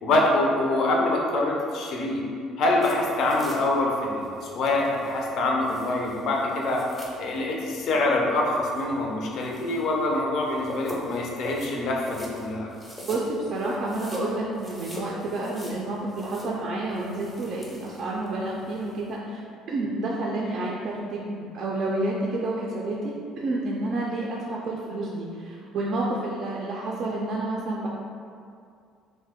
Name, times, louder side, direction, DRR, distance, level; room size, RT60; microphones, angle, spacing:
voice 1, 0.0-2.2 2.6-6.8 7.2-12.7, left 2 dB, 60° left, -1 dB, 0.4 m, -25 dB
sound 1, 2.8-19.1, left 1 dB, 5° left, 0.5 m, -42 dB
voice 2, 13.0-27.9, right 2 dB, 55° right, -3 dB, 0.3 m, -29 dB
2.6 x 2.1 x 3.5 m, 2.3 s
cardioid pair, 110°, 0 cm